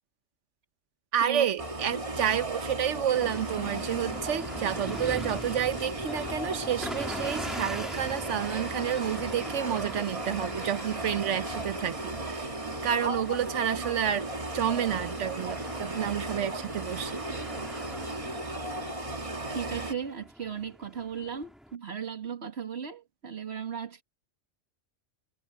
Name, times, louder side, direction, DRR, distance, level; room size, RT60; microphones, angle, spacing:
voice 1, 1.1-12.1 12.8-14.3 14.5-17.2, right 9 dB, 85° right, 1.2 m, -30 dB
sound 1, 1.6-19.9, right 2 dB, 30° right, 1.9 m, -35 dB
sound 2, 3.1-21.8, equal, ahead, 3.8 m, -43 dB
voice 2, 19.5-24.0, right 7 dB, 60° right, 1.9 m, -36 dB
omnidirectional pair, 1.2 m